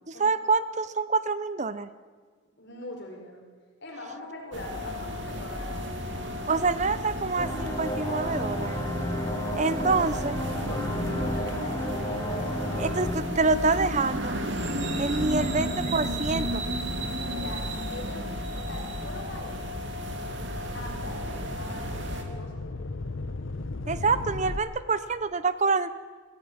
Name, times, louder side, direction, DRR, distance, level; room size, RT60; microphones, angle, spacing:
voice 1, 0.1-1.9 6.5-8.8 9.5-10.4 12.8-14.3 15.0-16.6 23.9-25.9, right 4 dB, 35° right, 14 dB, 0.7 m, -26 dB
voice 2, 2.6-3.5 3.8-6.1 10.7-12.7 15.2-15.8 17.2-18.3 18.6-19.6 20.7-22.6, left 2 dB, 55° left, 0 dB, 5.3 m, -42 dB
sound 1, 4.5-22.2, equal, 60° right, 2.7 m, -33 dB
sound 2, 7.4-13.2, equal, 15° left, 2.3 m, -32 dB
sound 3, 17.9-24.6, left 2 dB, 70° left, 1.0 m, -41 dB
23.0 x 16.0 x 8.8 m, 1.5 s
head